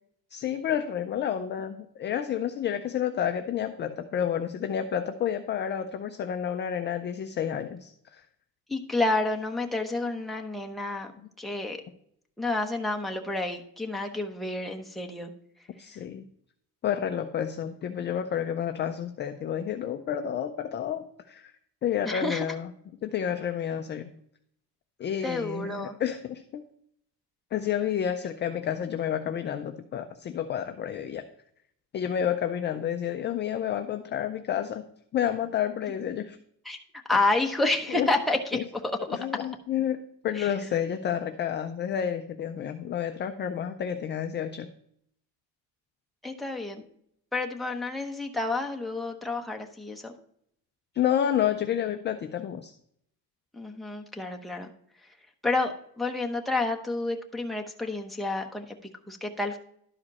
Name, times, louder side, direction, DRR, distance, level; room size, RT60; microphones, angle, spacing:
voice 1, 0.3-8.2 15.8-16.3 16.8-21.5 21.8-22.7 23.0-24.1 25.0-26.6 27.5-31.2 31.9-34.8 35.1-36.4 37.9-38.1 38.5-38.6 39.1-44.7 50.9-52.7, left 9 dB, 25° left, 6 dB, 0.4 m, -30 dB
voice 2, 8.7-11.1 11.4-11.8 12.4-15.3 22.0-22.4 25.2-25.9 36.6-36.8 37.1-38.6 40.3-40.5 46.2-46.8 47.3-50.1 53.5-54.7 55.4-59.6, left 2 dB, ahead, 1 dB, 0.7 m, -29 dB
11.5 x 4.9 x 4.1 m, 0.69 s
cardioid pair, 150°, 44 cm